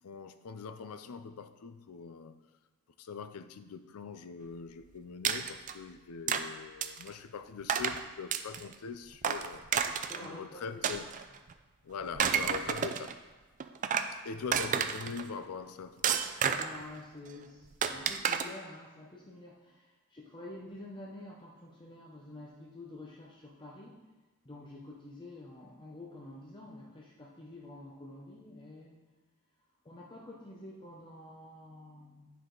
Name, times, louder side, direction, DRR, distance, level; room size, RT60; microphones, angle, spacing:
voice 1, 0.0-2.4 3.0-11.1 11.8-13.2 14.2-16.1, left 5 dB, 75° left, 10 dB, 0.5 m, -43 dB
sound 1, 5.2-5.7 6.3-6.4 6.8-7.1 7.7-8.0 8.3-8.7 9.2-10.3 10.8-11.5 12.0-13.1 13.6-14.1 14.5-15.2 16.0-16.8 17.8-18.4, right 7 dB, 35° right, 0.4 m, -30 dB
voice 2, 10.0-11.1 14.3-14.5 16.4-24.1 24.4-29.1 29.8-32.3, left 1 dB, 20° left, -3 dB, 0.7 m, -48 dB
9.8 x 4.7 x 3.9 m, 1.2 s
head